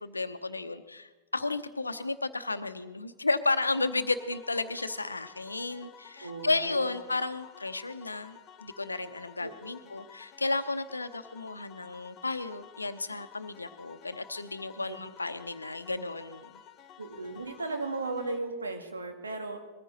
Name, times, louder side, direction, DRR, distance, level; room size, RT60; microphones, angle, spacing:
voice 1, 0.0-16.6, left 3 dB, 80° left, 11 dB, 0.8 m, -33 dB
sound 1, 3.6-18.4, left 9 dB, 35° left, 0.7 m, -53 dB
voice 2, 6.2-7.0 9.4-9.8 14.8-15.0 17.0-19.6, right 3 dB, 75° right, 4 dB, 1.8 m, -36 dB
21.0 x 14.5 x 4.1 m, 1.2 s
figure-of-eight pair, 90°, 0 cm